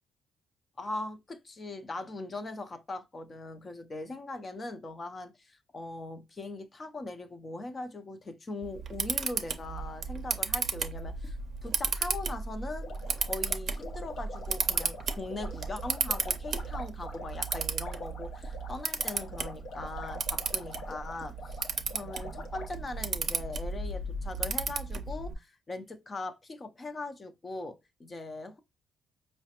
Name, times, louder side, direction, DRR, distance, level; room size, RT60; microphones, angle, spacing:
voice 1, 0.8-13.0 13.2-21.6 21.9-28.6, left 2 dB, 35° left, 0.5 m, -40 dB
Camera, 8.6-25.3, right 5 dB, 50° right, 0.5 m, -34 dB
sound 1, 12.8-22.7, left 2 dB, 70° left, 0.7 m, -45 dB
4.9 x 2.1 x 2.8 m
cardioid pair, 90°, 0 cm